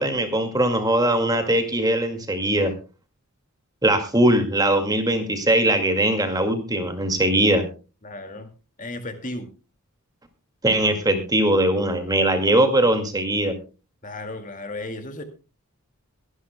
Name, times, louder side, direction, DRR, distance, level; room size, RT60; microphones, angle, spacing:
voice 1, 0.0-2.7 3.8-7.6 10.6-13.5, right 1 dB, 15° right, 6 dB, 2.0 m, -20 dB
voice 2, 8.0-8.5 8.8-9.5 14.0-15.2, left 2 dB, 35° left, 7 dB, 2.1 m, -34 dB
23.0 x 11.0 x 2.2 m, 0.32 s
head